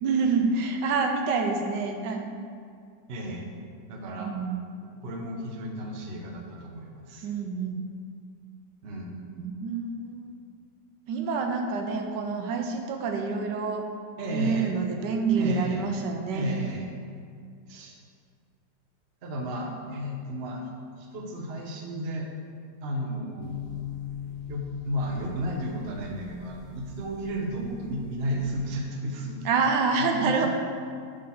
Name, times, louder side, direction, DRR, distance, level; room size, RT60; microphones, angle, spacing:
voice 1, 0.0-2.4 4.2-4.6 7.2-7.8 9.4-10.3 11.1-13.8 14.3-16.6 29.4-30.5, right 4 dB, 80° right, 4 dB, 1.2 m, -27 dB
voice 2, 3.1-3.5 3.9-4.3 5.0-7.3 8.8-9.1 14.2-14.7 15.3-15.9 16.3-16.9 17.7-18.0 19.2-20.6 21.0-22.3 22.8-23.5 24.5-29.4 30.0-30.5, equal, 50° right, 1 dB, 0.8 m, -33 dB
sound 1, 23.4-28.6, left 8 dB, 55° left, 0.8 m, -41 dB
6.3 x 4.0 x 5.7 m, 2.2 s
omnidirectional pair, 1.9 m